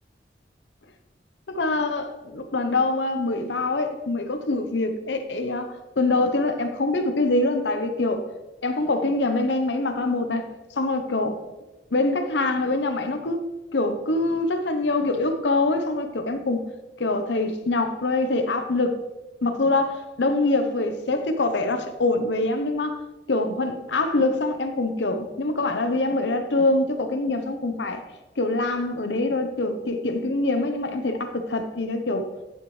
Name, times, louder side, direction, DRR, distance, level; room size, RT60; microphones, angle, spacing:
voice 1, 1.5-8.2 8.6-10.4 10.7-11.4 11.9-16.7 17.0-19.0 19.4-23.0 23.3-28.0 28.4-32.3, left 2 dB, 75° left, 7 dB, 0.9 m, -24 dB
10.5 x 7.2 x 3.3 m, 1.1 s
head